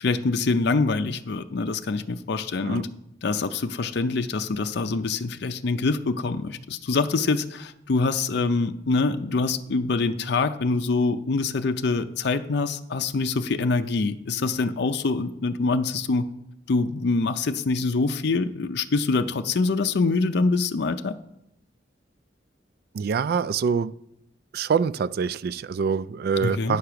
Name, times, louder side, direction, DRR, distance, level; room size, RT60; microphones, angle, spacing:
voice 1, 0.0-2.9 3.2-16.3 16.7-21.2 26.4-26.8, left 3 dB, 60° left, 0.5 m, -25 dB
voice 2, 22.9-23.9 24.5-26.8, right 6 dB, 55° right, 0.3 m, -25 dB
10.0 x 6.5 x 5.8 m
head